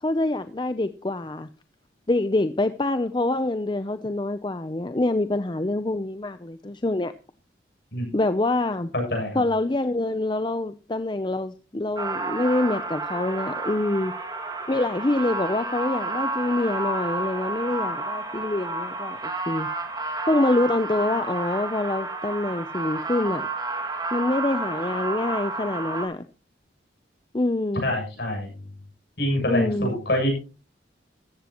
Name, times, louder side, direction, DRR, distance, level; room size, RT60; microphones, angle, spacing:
voice 1, 0.0-1.5 2.1-7.1 8.1-8.9 9.3-14.1 14.7-19.7 20.3-23.5 24.1-26.2 27.3-27.9 29.5-30.0, left 2 dB, 25° left, 0.6 m, -25 dB
voice 2, 8.9-9.4 27.8-28.5 29.2-30.3, left 1 dB, 55° left, 7.6 m, -25 dB
sound 1, 12.0-26.1, right 3 dB, 20° right, 2.2 m, -31 dB
15.0 x 14.0 x 3.0 m
head